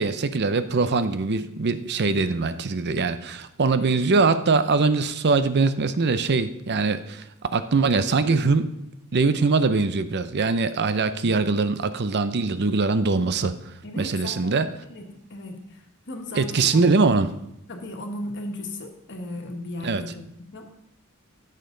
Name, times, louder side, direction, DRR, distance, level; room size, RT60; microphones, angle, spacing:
voice 1, 0.0-7.2 7.5-8.7 9.1-13.5 14.0-14.7 16.4-17.3 19.8-20.0, right 4 dB, 50° right, 12 dB, 0.6 m, -22 dB
voice 2, 13.8-17.0 17.7-20.7, left 1 dB, 55° left, 3 dB, 1.6 m, -37 dB
16.0 x 6.6 x 3.8 m, 0.84 s
head